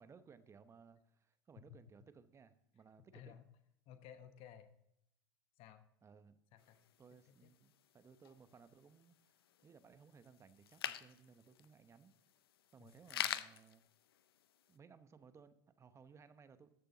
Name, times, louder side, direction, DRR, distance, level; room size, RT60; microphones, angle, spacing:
voice 1, 0.0-3.3 6.0-6.4 7.0-9.3 9.6-12.1 12.7-13.8 14.7-16.8, right 6 dB, 25° right, 12 dB, 0.9 m, -61 dB
voice 2, 3.1-3.4 3.9-4.7 5.6-5.9 6.5-6.8 7.3-7.5 12.8-12.9, left 9 dB, 50° left, 9 dB, 1.0 m, -56 dB
sound 1, 6.6-14.7, left 11 dB, 85° left, 0.6 m, -47 dB
13.5 x 6.7 x 3.9 m, 0.79 s
hypercardioid pair, 95°, 12 cm